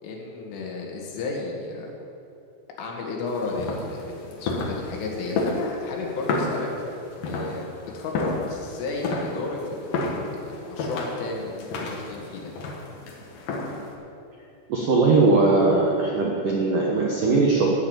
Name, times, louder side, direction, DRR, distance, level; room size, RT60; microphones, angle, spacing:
voice 1, 0.0-1.9 2.8-6.7 7.2-7.7 7.9-9.9 10.3-12.5, left 3 dB, 75° left, -1 dB, 4.2 m, -33 dB
sound 1, 3.3-13.9, left 2 dB, 60° left, 2.5 m, -31 dB
voice 2, 14.7-17.7, right 3 dB, 70° right, -3 dB, 2.0 m, -20 dB
14.5 x 7.2 x 9.0 m, 2.7 s
omnidirectional pair, 5.7 m